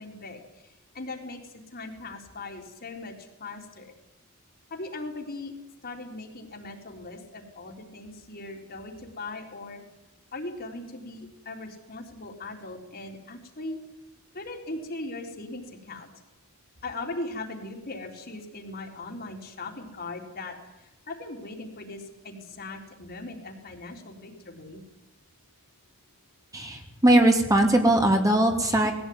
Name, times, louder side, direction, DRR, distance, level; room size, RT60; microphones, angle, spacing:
voice 1, 0.0-3.9 4.7-5.5 5.8-9.8 10.3-13.8 14.3-16.1 16.8-24.8, left 2 dB, 45° left, 1 dB, 3.8 m, -39 dB
voice 2, 26.5-28.9, right 1 dB, 15° right, 3 dB, 2.6 m, -20 dB
20.5 x 16.0 x 9.6 m, 0.98 s
head